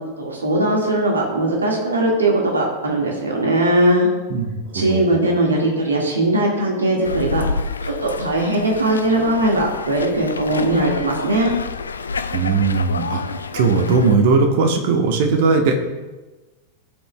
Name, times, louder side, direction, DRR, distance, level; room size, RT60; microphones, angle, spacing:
voice 1, 0.2-4.1 4.7-7.4 8.0-11.5, right 1 dB, 75° right, -1 dB, 1.7 m, -19 dB
voice 2, 4.3-5.1 12.3-15.8, right 4 dB, 50° right, 4 dB, 1.1 m, -18 dB
sound 1, 7.0-14.2, left 4 dB, 75° left, 0.4 m, -29 dB
15.0 x 5.4 x 2.2 m, 1.2 s
figure-of-eight pair, 90°, 0 cm